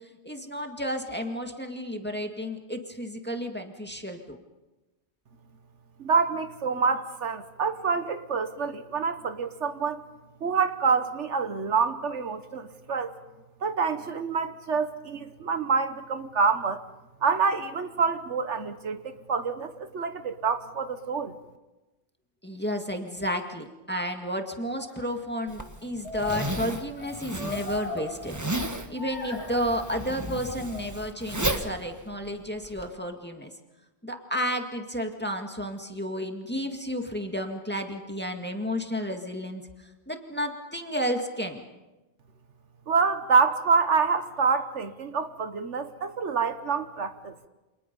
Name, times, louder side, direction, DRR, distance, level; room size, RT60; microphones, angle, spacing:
voice 1, 0.2-4.4 22.4-33.5 34.0-39.6 40.1-41.6, equal, 10° left, 4 dB, 2.0 m, -32 dB
voice 2, 6.0-10.0 10.4-13.1 13.6-16.8 17.2-21.4 42.9-47.3, right 5 dB, 70° right, 10 dB, 1.5 m, -27 dB
sound 1, 24.9-25.2 26.0-28.7 29.0-29.9 30.4-31.3, left 3 dB, 60° left, 2.3 m, -39 dB
Zipper (clothing), 25.5-32.9, right 1 dB, 15° right, 1.4 m, -34 dB
29.0 x 27.0 x 5.4 m, 1.1 s
omnidirectional pair, 1.3 m